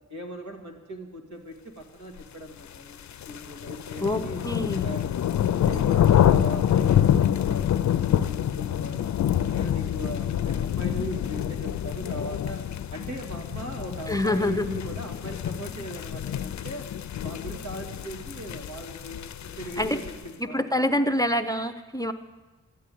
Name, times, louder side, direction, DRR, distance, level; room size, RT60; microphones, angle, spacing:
voice 1, 0.1-4.4 4.8-9.1 9.5-12.6 12.9-16.9 17.2-20.9, right 1 dB, 75° right, 3 dB, 2.4 m, -39 dB
sound 1, 2.7-20.3, left 10 dB, 70° left, 0.5 m, -26 dB
voice 2, 4.0-4.9 14.1-14.8 19.8-20.0 20.4-22.1, left 1 dB, 10° left, 9 dB, 0.6 m, -26 dB
13.0 x 10.0 x 9.2 m, 1.2 s
wide cardioid pair, 140°, 29 cm